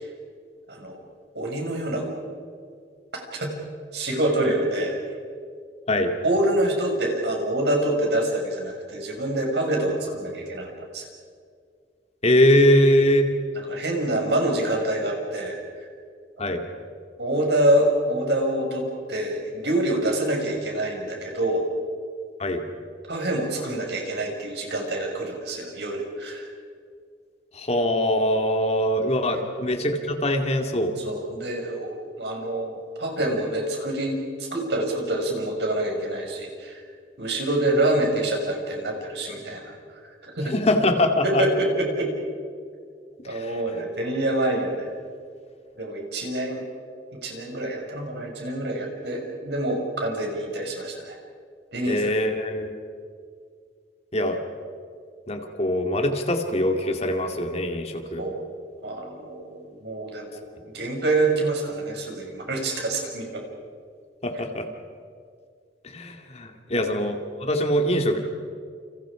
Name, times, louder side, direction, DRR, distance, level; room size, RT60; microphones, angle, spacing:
voice 1, 0.7-1.0 1.3-2.1 3.3-3.5 3.9-4.9 6.2-11.1 13.7-15.6 16.4-16.6 17.2-21.7 23.1-26.5 29.3-29.4 31.0-36.8 37.2-39.7 40.2-40.6 41.2-42.1 43.3-44.9 45.8-46.6 47.1-51.2 51.7-52.1 58.2-58.4 58.8-63.4 66.8-66.9, right 1 dB, 65° right, 1 dB, 6.0 m, -26 dB
voice 2, 12.2-13.3 16.4-16.6 22.4-22.6 27.6-30.9 40.4-41.4 43.3-43.6 51.9-52.7 54.1-54.4 55.3-58.2 64.2-64.7 65.8-68.2, left 1 dB, 35° left, 4 dB, 2.3 m, -22 dB
29.5 x 29.0 x 5.0 m, 2.2 s
head